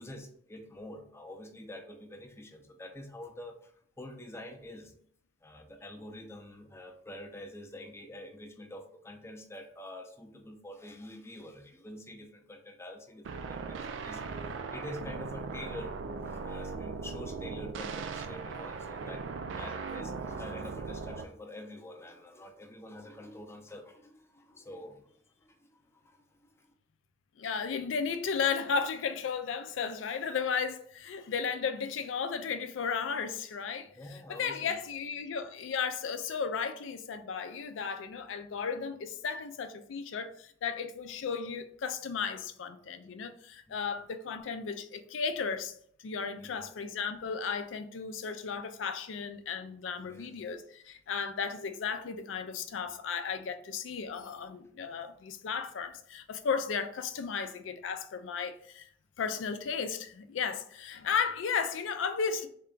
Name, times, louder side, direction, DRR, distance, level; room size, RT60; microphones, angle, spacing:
voice 1, 0.0-4.9 5.4-19.2 19.5-25.1 25.4-26.7 34.0-34.8 43.7-43.8 46.4-46.7 50.1-50.4, left 1 dB, 15° left, 0.5 m, -47 dB
sound 1, 13.2-21.2, right 4 dB, 75° right, 0.3 m, -39 dB
voice 2, 27.4-45.7 46.0-58.9 59.2-62.5, left 6 dB, 80° left, 0.4 m, -34 dB
3.6 x 2.2 x 3.7 m
head